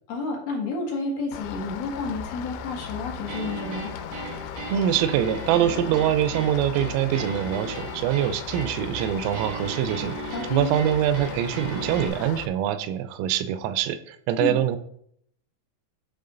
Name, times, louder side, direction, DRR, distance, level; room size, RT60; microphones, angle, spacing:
voice 1, 0.1-3.9 10.3-10.7 14.4-14.6, left 3 dB, 55° left, -2 dB, 1.8 m, -30 dB
Rain, 1.3-12.5, left 8 dB, 85° left, 3.4 m, -37 dB
sound 1, 3.3-12.1, right 4 dB, 70° right, 2.0 m, -36 dB
voice 2, 4.7-14.8, right 11 dB, 85° right, 12 dB, 3.3 m, -24 dB
10.5 x 5.6 x 3.9 m, 0.68 s
omnidirectional pair, 5.9 m